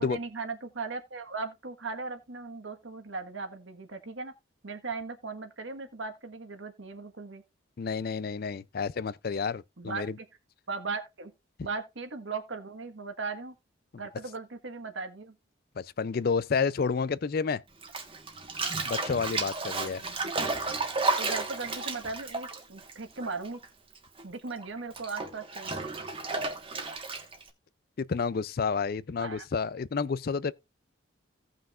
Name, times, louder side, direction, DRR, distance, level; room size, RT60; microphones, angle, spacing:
voice 1, 0.0-4.3 4.6-7.4 9.8-10.3 10.7-11.3 11.6-13.5 14.0-15.3 19.6-20.5 21.0-23.6 24.2-25.8 29.2-29.5, right 4 dB, 70° right, 1.4 m, -38 dB
voice 2, 7.8-10.1 15.8-17.6 18.9-20.0 28.0-30.5, left 5 dB, 50° left, 0.4 m, -30 dB
Bathtub (filling or washing), 17.8-23.7 23.9-27.5, right 3 dB, 25° right, 1.3 m, -33 dB
17.0 x 5.7 x 2.4 m
head